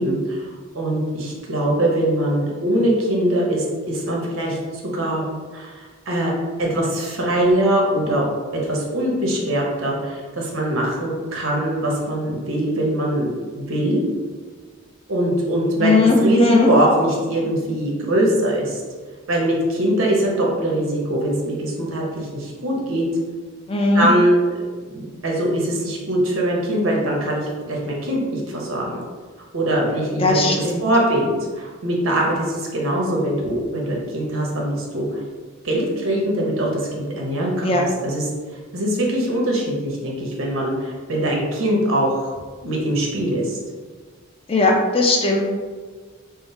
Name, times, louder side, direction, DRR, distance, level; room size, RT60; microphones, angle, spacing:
voice 1, 0.0-5.2 5.5-6.3 6.6-8.2 8.5-14.0 15.1-18.8 19.3-23.0 23.9-24.4 24.9-29.0 29.5-35.2 35.6-38.3 38.7-42.3 42.6-43.6, right 1 dB, 75° right, -2 dB, 0.9 m, -22 dB
voice 2, 15.8-16.7 23.7-24.1 30.2-30.8 37.6-37.8 44.5-45.4, left 3 dB, 25° left, 0 dB, 0.5 m, -18 dB
3.6 x 2.0 x 4.1 m, 1.5 s
head